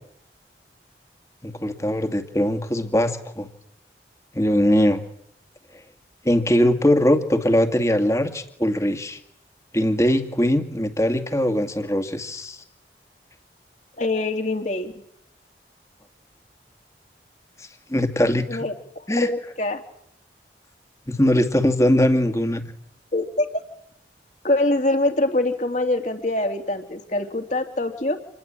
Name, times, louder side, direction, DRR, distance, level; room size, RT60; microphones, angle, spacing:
voice 1, 1.4-3.5 4.3-5.0 6.2-9.2 9.7-12.6 17.6-18.7 19.1-19.3 21.1-22.6, equal, 15° left, 8 dB, 2.3 m, -21 dB
voice 2, 14.0-14.9 18.5-19.8 23.1-23.5 24.4-28.2, left 2 dB, 40° left, 5 dB, 3.1 m, -24 dB
27.5 x 20.5 x 9.0 m, 0.71 s
head